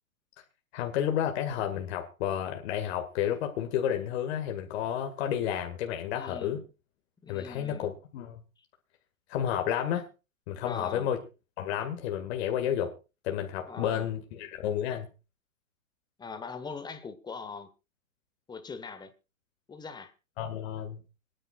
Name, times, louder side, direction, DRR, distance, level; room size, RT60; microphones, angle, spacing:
voice 1, 0.7-6.6 7.3-8.4 9.3-10.1 10.5-11.2 11.6-12.9 13.2-15.1 20.4-21.0, left 10 dB, 50° left, 2.1 m, -31 dB
voice 2, 6.1-6.6 7.2-7.9 10.6-11.1 13.6-14.1 16.2-17.7 18.5-19.1 19.7-20.1, left 5 dB, 10° left, 1.4 m, -41 dB
26.0 x 10.0 x 2.4 m
hypercardioid pair, 120°, 41 cm